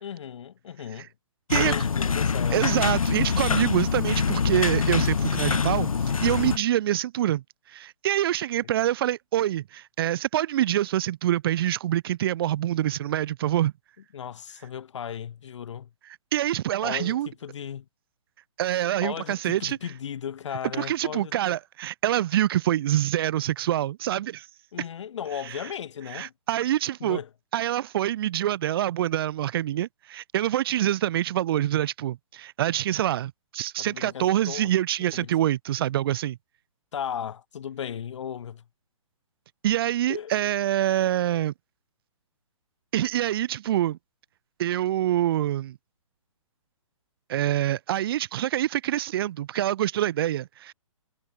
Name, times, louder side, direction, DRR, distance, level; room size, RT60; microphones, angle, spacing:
voice 1, 0.0-1.1 1.5-2.8 14.1-15.9 16.8-17.9 19.0-21.3 24.7-26.3 27.0-27.3 33.8-34.7 35.1-35.3 36.9-38.6 40.1-40.3, left 8 dB, 60° left, 2.4 m, -36 dB
sound 1, 1.5-6.6, left 5 dB, 90° left, 1.0 m, -24 dB
voice 2, 2.5-5.9 6.2-7.4 7.7-13.7 16.3-17.3 18.6-19.8 20.8-24.5 26.1-27.2 27.5-36.4 39.6-41.5 42.9-44.0 44.6-45.8 47.3-50.7, right 12 dB, 45° right, 0.8 m, -25 dB
hypercardioid pair, 145°, 17 cm